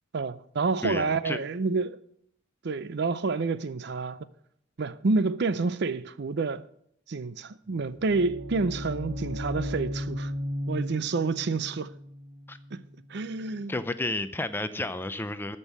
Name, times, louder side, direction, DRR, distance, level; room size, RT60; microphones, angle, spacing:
voice 1, 0.1-2.0 2.6-4.2 4.8-6.6 7.1-10.3 10.7-11.9 12.7-12.8 13.1-13.7, right 4 dB, 55° right, 0.5 m, -28 dB
voice 2, 0.8-1.4 12.5-12.6 13.7-15.6, left 2 dB, 10° left, 0.5 m, -31 dB
sound 1, 7.7-13.6, left 1 dB, 40° right, 4.5 m, -36 dB
13.5 x 5.5 x 8.2 m
head